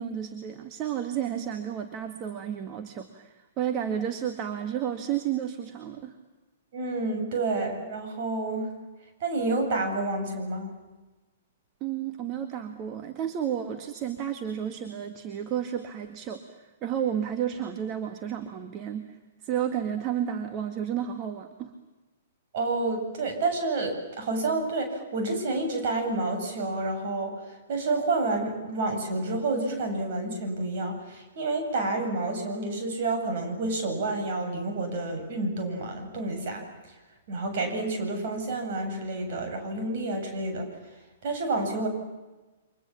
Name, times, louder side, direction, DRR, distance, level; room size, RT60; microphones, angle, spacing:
voice 1, 0.0-6.1 11.8-19.2 19.4-21.7, right 9 dB, 30° right, 7 dB, 2.0 m, -32 dB
voice 2, 6.7-8.7 9.2-10.8 22.5-36.6 37.3-40.7 41.2-41.9, right 2 dB, 45° right, 4 dB, 8.0 m, -29 dB
29.5 x 25.5 x 7.4 m, 1.1 s
figure-of-eight pair, 110°, 0 cm